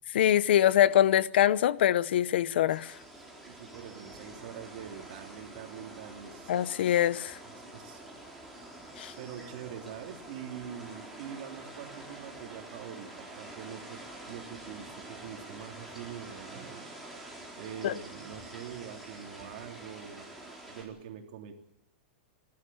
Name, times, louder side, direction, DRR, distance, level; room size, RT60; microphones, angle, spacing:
voice 1, 0.1-2.9 6.5-7.4 9.0-9.1 17.8-17.9, left 11 dB, 70° left, 0.8 m, -24 dB
sound 1, 2.7-20.8, right 1 dB, ahead, 4.4 m, -47 dB
voice 2, 3.4-6.5 7.4-8.0 9.2-16.9 17.6-20.3 20.7-21.5, right 9 dB, 50° right, 3.3 m, -44 dB
29.0 x 12.5 x 8.8 m
supercardioid pair, 160°, 6 cm